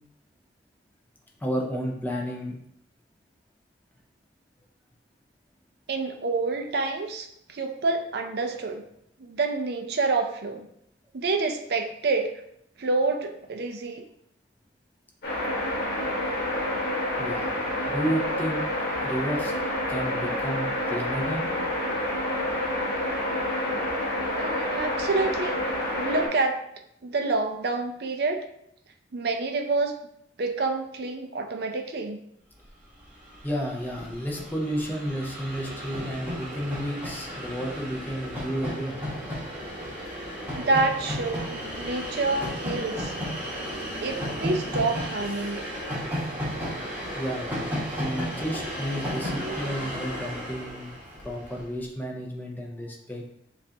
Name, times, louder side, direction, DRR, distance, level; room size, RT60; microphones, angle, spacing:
voice 1, 1.4-2.5 17.2-17.6 17.9-18.6 19.0-19.5 19.9-21.5 33.4-39.0 47.2-50.9 51.2-53.2, equal, 10° left, 0 dB, 0.6 m, -32 dB
voice 2, 5.9-8.8 9.2-10.7 11.1-12.3 12.8-14.0 24.4-25.6 25.9-26.6 27.0-28.4 29.1-29.9 30.4-32.2 40.6-43.1 44.0-45.7, right 3 dB, 60° right, 5 dB, 0.5 m, -28 dB
sound 1, 15.2-26.3, left 1 dB, 60° left, 1.3 m, -28 dB
Train, 33.0-33.1 33.2-51.6, equal, 10° right, 1.2 m, -34 dB
7.2 x 2.5 x 2.8 m, 0.73 s
head